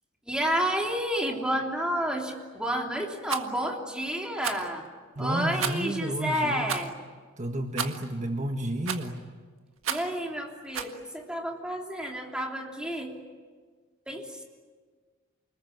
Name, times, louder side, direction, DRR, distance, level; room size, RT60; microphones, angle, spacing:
voice 1, 0.3-4.8 5.2-6.9 9.9-13.1 14.1-14.3, equal, 5° right, 0 dB, 3.3 m, -30 dB
Rattle, 3.2-3.5 4.4-4.7 5.6-5.9 6.6-6.9 7.8-8.1 8.8-9.2 9.8-10.2 10.7-11.0, right 7 dB, 75° right, 1.7 m, -32 dB
voice 2, 5.1-6.7 7.4-9.2, right 1 dB, 35° right, 4 dB, 1.6 m, -31 dB
29.0 x 20.5 x 9.5 m, 1.5 s
head